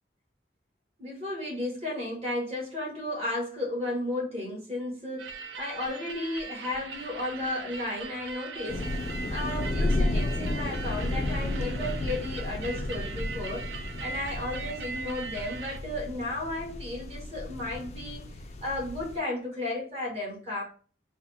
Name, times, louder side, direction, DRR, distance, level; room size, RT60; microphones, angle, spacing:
voice 1, 1.0-8.9 9.3-13.7 14.0-18.2 18.6-20.6, left 1 dB, 35° right, -2 dB, 1.3 m, -34 dB
sound 1, 5.2-15.8, right 5 dB, 80° right, 0.4 m, -40 dB
sound 2, 8.7-19.2, left 1 dB, 35° left, 0.4 m, -33 dB
4.1 x 2.0 x 4.1 m, 0.41 s
head